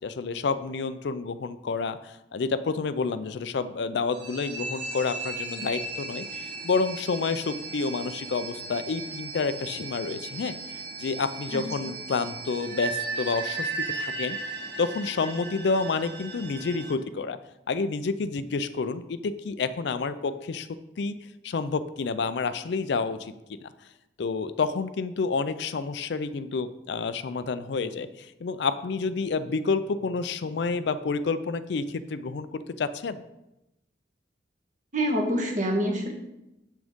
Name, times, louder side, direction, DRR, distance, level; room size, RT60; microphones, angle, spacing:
voice 1, 0.0-10.5 11.0-13.7 14.0-14.4 14.8-17.4 17.7-20.7 21.0-21.1 21.4-23.3 24.2-33.2, left 4 dB, 65° left, 12 dB, 0.4 m, -29 dB
sound 1, 4.1-16.9, right 3 dB, 65° right, 1.5 m, -36 dB
voice 2, 11.5-11.9 34.9-36.1, equal, 40° right, 0 dB, 1.3 m, -27 dB
7.5 x 6.2 x 3.6 m, 0.90 s
head